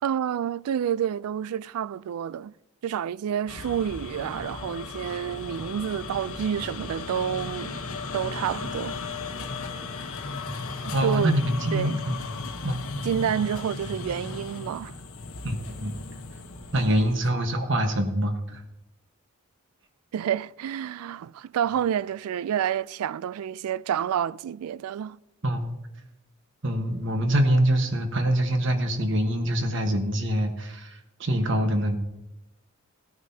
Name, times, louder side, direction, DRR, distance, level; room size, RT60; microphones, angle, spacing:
voice 1, 0.0-2.5 2.8-7.8 8.1-9.0 10.8-11.4 11.7-12.0 13.0-14.9 20.1-25.2, right 9 dB, 85° right, 0.3 m, -29 dB
sound 1, 3.5-17.3, left 3 dB, 80° left, 1.1 m, -36 dB
voice 2, 10.9-12.2 12.6-12.8 15.4-16.0 16.7-18.6 25.4-25.7 26.6-32.0, right 1 dB, 55° right, 1.3 m, -25 dB
16.5 x 9.4 x 2.8 m
head